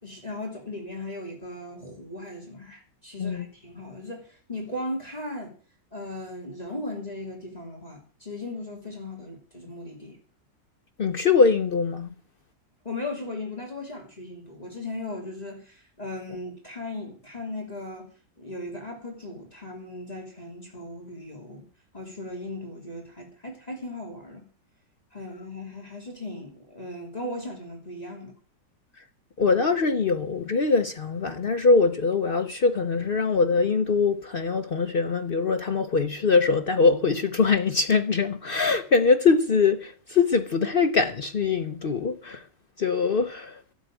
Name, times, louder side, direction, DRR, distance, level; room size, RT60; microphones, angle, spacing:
voice 1, 0.0-5.5 5.9-10.2 12.8-18.1 18.4-21.6 21.9-24.4 25.1-28.3, left 2 dB, 20° left, 3.2 m, -37 dB
voice 2, 11.0-12.1 29.4-42.5 42.8-43.6, left 4 dB, 65° left, 0.5 m, -23 dB
12.0 x 8.1 x 9.1 m
omnidirectional pair, 1.9 m